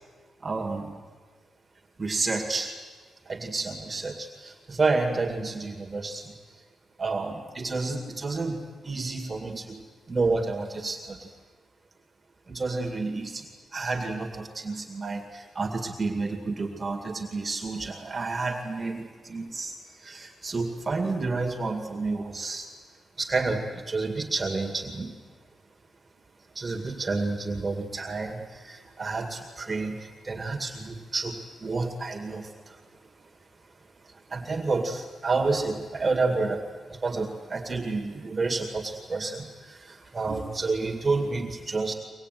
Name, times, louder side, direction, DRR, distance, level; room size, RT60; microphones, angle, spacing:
voice 1, 0.4-1.0 2.0-2.7 3.3-6.6 7.0-9.8 10.1-11.3 12.5-13.5 13.7-22.7 23.2-25.2 26.5-32.8 34.0-41.9, right 3 dB, 30° right, 3 dB, 2.2 m, -30 dB
23.5 x 20.0 x 9.3 m, 1.5 s
cardioid pair, 90°, 0 cm